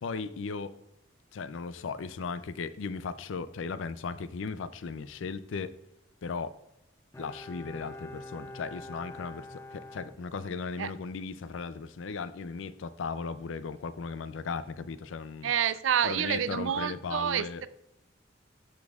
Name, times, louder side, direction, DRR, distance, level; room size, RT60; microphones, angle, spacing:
voice 1, 0.0-0.8 1.3-5.8 6.2-6.6 7.2-15.5 16.0-17.7, left 5 dB, 85° left, 0.4 m, -37 dB
Bowed string instrument, 7.1-10.9 11.2-11.3, left 1 dB, 15° left, 0.3 m, -46 dB
voice 2, 15.4-17.7, right 9 dB, 85° right, 0.4 m, -28 dB
12.0 x 5.3 x 2.4 m
head